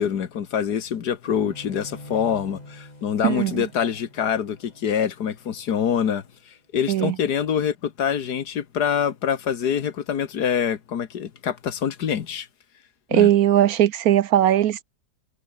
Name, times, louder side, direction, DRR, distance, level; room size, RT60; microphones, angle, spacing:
voice 1, 0.0-6.2 6.7-12.5 13.1-13.3, left 8 dB, 70° left, 1.9 m, -25 dB
Bowed string instrument, 1.2-6.6, left 1 dB, 20° left, 6.9 m, -45 dB
voice 2, 3.2-3.6 6.9-7.1 13.1-14.8, right 12 dB, 70° right, 1.0 m, -19 dB
omnidirectional pair, 1.8 m